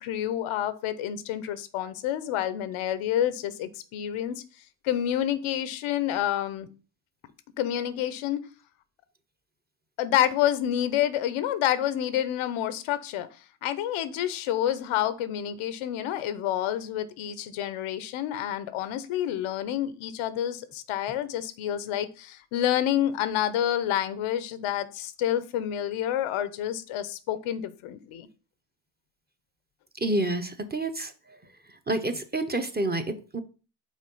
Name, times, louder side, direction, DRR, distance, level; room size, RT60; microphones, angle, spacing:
voice 1, 0.0-4.4 4.8-6.7 7.6-8.4 10.0-13.3 13.6-28.3, left 11 dB, 90° left, 13 dB, 0.8 m, -28 dB
voice 2, 30.0-31.1 31.9-33.4, right 2 dB, 20° right, 7 dB, 0.9 m, -28 dB
5.2 x 3.7 x 5.5 m, 0.36 s
supercardioid pair, 65°, 49 cm